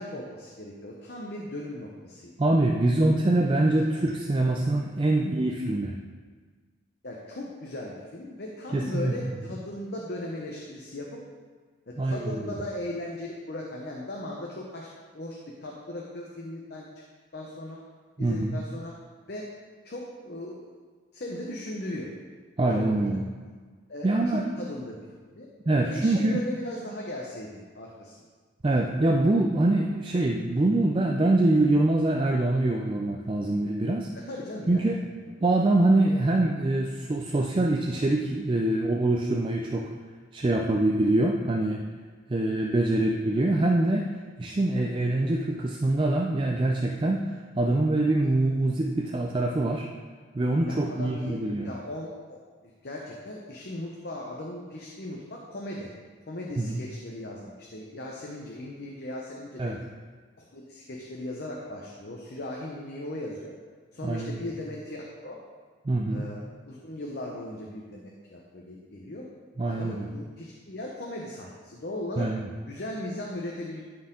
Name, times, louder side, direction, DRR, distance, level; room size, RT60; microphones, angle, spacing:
voice 1, 0.0-2.3 7.0-11.2 11.9-14.9 15.1-16.9 17.3-17.8 18.2-18.9 19.3-19.5 19.8-20.6 21.1-22.1 22.6-23.1 23.9-25.5 25.8-28.1 34.3-34.9 42.9-43.0 48.6-48.7 50.6-52.4 52.6-55.9 56.3-59.7 60.4-63.5 63.9-65.4 66.1-69.3 69.6-72.3 72.7-73.8, left 1 dB, 50° left, -2 dB, 0.8 m, -38 dB
voice 2, 2.4-5.9 8.7-9.1 12.0-12.4 18.2-18.6 22.6-23.2 24.0-24.4 25.7-26.4 28.6-34.1 34.7-35.0 35.4-39.9 40.3-41.8 42.3-44.1 44.4-49.8 50.3-51.7 56.6-56.8 59.6-59.8 64.0-64.4 65.9-66.2 69.6-70.1 72.2-72.5, right 2 dB, 25° right, 1 dB, 0.4 m, -24 dB
12.5 x 4.5 x 3.7 m, 1.5 s
head